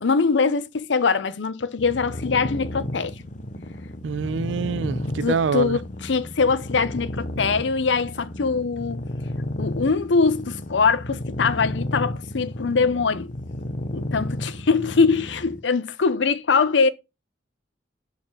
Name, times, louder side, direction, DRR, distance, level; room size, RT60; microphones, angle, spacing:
voice 1, 0.0-3.1 5.2-9.0 9.6-13.3 13.9-16.9, left 4 dB, 75° left, 0.6 m, -22 dB
sound 1, 1.8-15.6, left 1 dB, 45° left, 0.9 m, -32 dB
voice 2, 4.0-5.8, right 5 dB, 90° right, 0.4 m, -25 dB
6.3 x 4.2 x 6.0 m
head